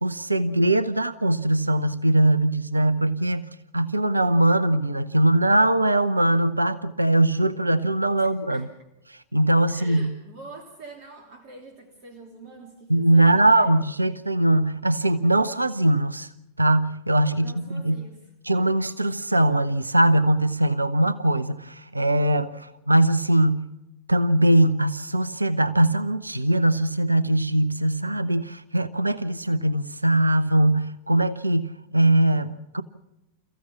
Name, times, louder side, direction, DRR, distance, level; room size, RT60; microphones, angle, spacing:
voice 1, 0.0-8.7 9.1-10.1 12.9-16.3 16.6-18.1 18.4-23.7 24.1-32.8, right 1 dB, 85° right, 0.7 m, -21 dB
voice 2, 8.2-8.7 9.7-13.7 17.3-18.2, right 2 dB, 45° right, 2.7 m, -45 dB
29.0 x 15.0 x 7.0 m
figure-of-eight pair, 90°, 0 cm